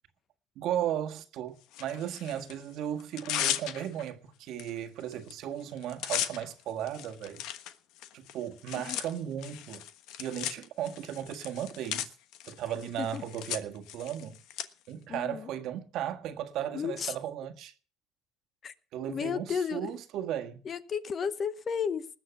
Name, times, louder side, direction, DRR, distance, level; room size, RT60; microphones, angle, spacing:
voice 1, 0.5-7.4 8.1-9.8 10.2-12.1 12.5-14.4 14.9-17.7 18.9-20.7, right 10 dB, 60° right, 1.6 m, -36 dB
Tearing, 1.7-2.5 3.0-4.1 4.6-4.7 5.0-5.3 5.6-14.6, left 11 dB, 70° left, 1.2 m, -37 dB
voice 2, 15.1-15.5 16.7-17.1 18.6-18.7 19.1-19.9 20.6-22.1, left 7 dB, 35° left, 0.9 m, -33 dB
20.0 x 7.0 x 7.0 m
cardioid pair, 130°, 0 cm